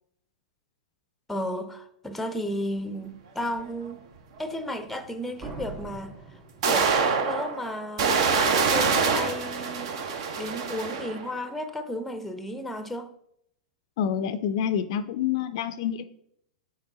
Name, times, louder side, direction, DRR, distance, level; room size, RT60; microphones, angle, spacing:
voice 1, 1.3-4.0 4.4-6.2 6.6-9.9 10.4-13.1, left 1 dB, 5° left, 0.6 m, -33 dB
sound 1, 3.9-4.0 5.8-5.9 6.6-11.3, right 5 dB, 55° right, 0.8 m, -25 dB
Slam, 5.4-7.3, right 4 dB, 30° right, 1.4 m, -41 dB
voice 2, 14.0-16.0, left 8 dB, 55° left, 0.4 m, -27 dB
5.9 x 4.5 x 3.8 m
figure-of-eight pair, 100°, 4 cm